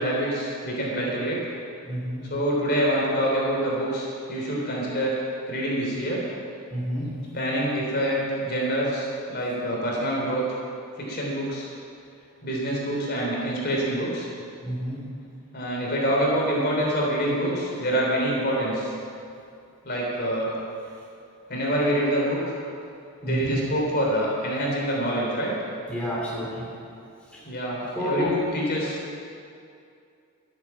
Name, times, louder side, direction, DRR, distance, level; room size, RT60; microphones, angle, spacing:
voice 1, 0.0-1.4 2.3-5.2 5.5-6.2 7.3-10.4 11.0-11.7 12.4-14.3 15.5-18.9 19.8-20.5 21.5-22.6 23.2-25.5 27.5-29.0, equal, 45° left, -3 dB, 3.4 m, -26 dB
voice 2, 1.9-2.3 6.7-7.1 14.6-15.0 23.2-23.5 25.9-26.7 27.3-27.4 27.9-28.4, equal, 5° left, -6 dB, 3.1 m, -29 dB
13.0 x 10.0 x 7.5 m, 2.5 s
head